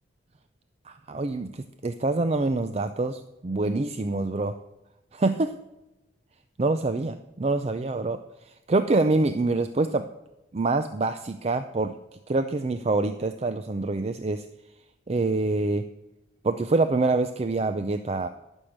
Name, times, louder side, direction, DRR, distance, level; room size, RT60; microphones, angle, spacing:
voice 1, 0.9-4.6 5.1-5.5 6.6-10.0 10.5-11.9 12.3-14.5 15.1-15.8 16.4-18.3, right 3 dB, 35° right, 9 dB, 0.4 m, -26 dB
12.0 x 6.4 x 6.6 m, 0.97 s
head